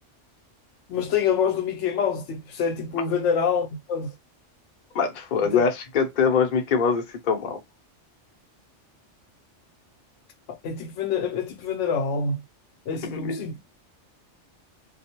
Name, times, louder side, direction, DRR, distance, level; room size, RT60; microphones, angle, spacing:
voice 1, 0.9-4.1 5.5-5.6 10.6-12.4 12.9-13.6, left 6 dB, 80° left, 0.9 m, -26 dB
voice 2, 4.9-7.6 12.9-13.5, left 5 dB, 50° left, 0.7 m, -24 dB
2.3 x 2.1 x 2.8 m
omnidirectional pair, 1.2 m